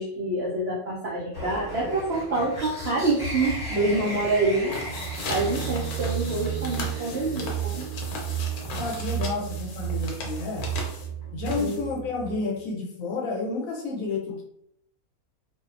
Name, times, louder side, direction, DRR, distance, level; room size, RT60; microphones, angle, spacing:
voice 1, 0.0-4.8 5.3-7.9 11.6-11.8, right 2 dB, 70° right, -5 dB, 0.6 m, -27 dB
sound 1, 1.3-7.5, left 1 dB, 30° left, 1.2 m, -36 dB
sound 2, 4.6-12.1, left 3 dB, 85° left, 1.1 m, -37 dB
sound 3, 4.7-12.5, right 11 dB, 90° right, 1.1 m, -33 dB
voice 2, 8.8-10.7 11.3-14.4, left 4 dB, 70° left, -1 dB, 1.0 m, -30 dB
2.7 x 2.0 x 2.4 m, 0.74 s
omnidirectional pair, 1.6 m